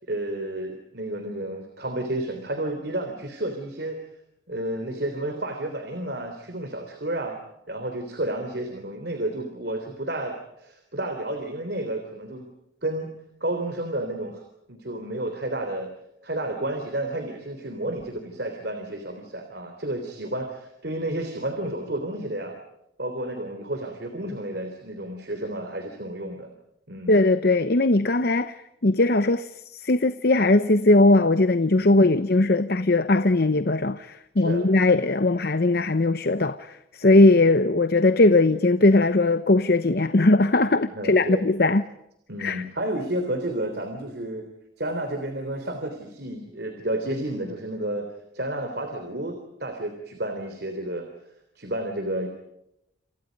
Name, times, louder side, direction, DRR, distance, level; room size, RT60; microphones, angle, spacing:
voice 1, 0.1-4.0 4.5-7.4 7.7-12.5 12.8-13.1 13.4-14.4 14.7-15.9 16.2-22.6 23.0-26.5 26.9-27.1 31.8-32.0 34.4-34.7 40.9-41.5 42.3-44.5 44.8-48.1 48.3-51.1 51.6-52.3, right 1 dB, 55° right, 3.5 m, -31 dB
voice 2, 27.1-41.9 42.4-42.6, left 2 dB, 55° left, 0.9 m, -19 dB
29.0 x 28.5 x 5.3 m
head